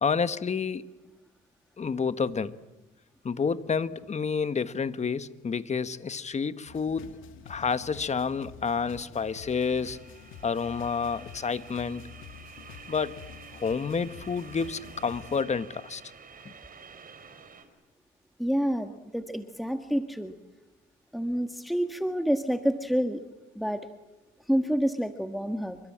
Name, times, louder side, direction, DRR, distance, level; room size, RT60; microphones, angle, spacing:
voice 1, 0.0-0.8 1.8-2.5 3.2-7.2 7.5-10.0 10.4-12.0 12.9-13.1 13.6-16.0, left 5 dB, 35° left, 1.4 m, -29 dB
sound 1, 6.7-15.4, left 8 dB, 90° left, 2.2 m, -48 dB
sound 2, 9.3-17.6, right 6 dB, 45° right, 5.0 m, -50 dB
voice 2, 18.4-20.3 21.1-23.2 23.5-23.9 24.5-25.8, equal, ahead, 1.6 m, -28 dB
28.0 x 24.0 x 8.7 m
cardioid pair, 90°, 20 cm